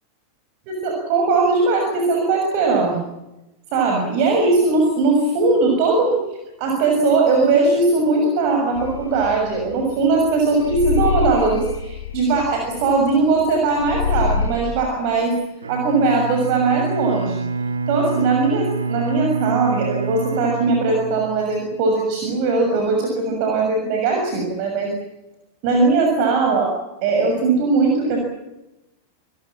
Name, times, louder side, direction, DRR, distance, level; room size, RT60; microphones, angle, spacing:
voice 1, 0.7-3.0 3.7-6.2 6.6-15.3 15.7-17.4 17.9-24.9 25.6-28.2, right 3 dB, 45° right, 2 dB, 6.7 m, -19 dB
sound 1, 8.8-10.2 10.6-13.5 13.8-14.7, left 5 dB, 70° left, 3.6 m, -25 dB
Bowed string instrument, 15.6-21.7, right 4 dB, 75° right, 1.9 m, -26 dB
28.0 x 21.5 x 7.3 m, 0.96 s
figure-of-eight pair, 90°, 0 cm